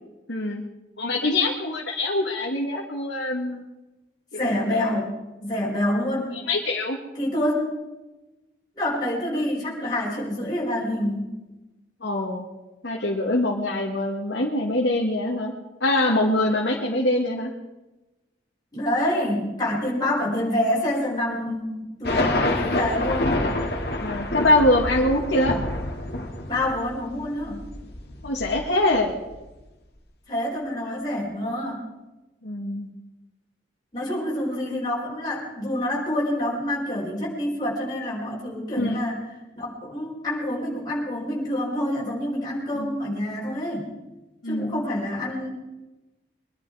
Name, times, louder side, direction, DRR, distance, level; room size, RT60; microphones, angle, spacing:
voice 1, 0.3-0.6 1.0-3.6 4.3-4.5 6.3-7.0 12.0-12.4 12.8-15.5 15.8-17.5 20.2-20.4 22.5-22.7 24.0-25.6 28.2-29.1 32.4-32.9 38.7-39.0 42.7-43.0 44.4-44.8, left 1 dB, 80° left, -2 dB, 1.8 m, -24 dB
voice 2, 4.4-5.1 5.4-6.3 7.2-7.7 8.8-11.3 18.7-23.5 26.5-27.6 30.3-31.8 33.9-39.2 39.5-43.9 44.5-45.5, left 1 dB, 20° left, -6 dB, 4.9 m, -27 dB
sound 1, 22.0-29.4, left 1 dB, 60° left, 2.2 m, -27 dB
23.0 x 11.0 x 4.8 m, 1.1 s
head